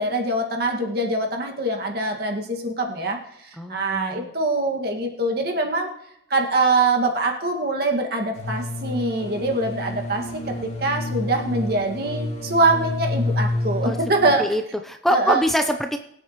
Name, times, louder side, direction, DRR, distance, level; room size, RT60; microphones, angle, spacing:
voice 1, 0.0-5.9 6.3-14.4 15.1-15.4, right 2 dB, 55° right, 2 dB, 2.0 m, -23 dB
voice 2, 3.6-4.3 13.8-14.0 14.4-16.0, equal, ahead, 5 dB, 0.6 m, -24 dB
sound 1, 8.4-14.3, left 2 dB, 35° left, 2.4 m, -29 dB
24.0 x 8.3 x 3.1 m, 0.77 s
head